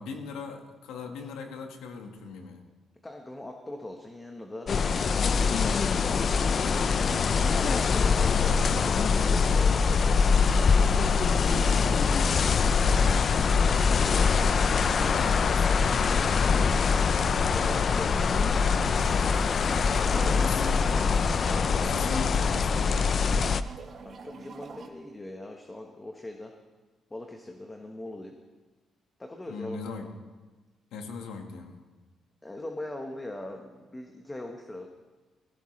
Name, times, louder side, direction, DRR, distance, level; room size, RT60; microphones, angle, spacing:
voice 1, 0.0-2.6 15.1-15.9 20.3-20.8 21.8-23.0 29.5-30.1 30.9-31.8, left 4 dB, 90° left, 4 dB, 1.6 m, -39 dB
voice 2, 3.0-4.7 5.7-6.8 7.3-8.9 9.3-10.9 17.5-18.7 20.0-20.8 24.0-26.5 27.1-28.3 29.2-29.9 32.4-34.9, left 1 dB, 15° left, 3 dB, 1.2 m, -42 dB
sound 1, 4.7-23.6, left 5 dB, 50° left, 0.5 m, -23 dB
sound 2, 18.9-24.9, right 5 dB, 55° right, 1.2 m, -44 dB
16.5 x 15.5 x 3.3 m, 1.2 s
cardioid pair, 90°, 0 cm